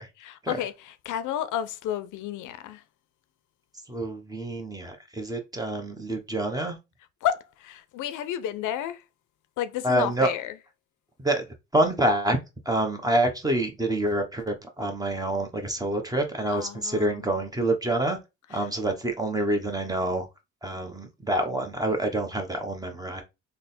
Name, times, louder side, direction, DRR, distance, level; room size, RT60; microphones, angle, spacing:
voice 1, 0.2-2.8 7.2-9.0 9.6-10.5 16.5-17.3, left 11 dB, 80° left, 0.5 m, -31 dB
voice 2, 3.9-6.8 9.8-10.3 11.2-11.5 11.7-12.4 12.6-18.2 18.5-20.3 20.6-23.2, right 1 dB, 10° right, 0.9 m, -27 dB
3.3 x 2.1 x 4.2 m
cardioid pair, 90°, 30 cm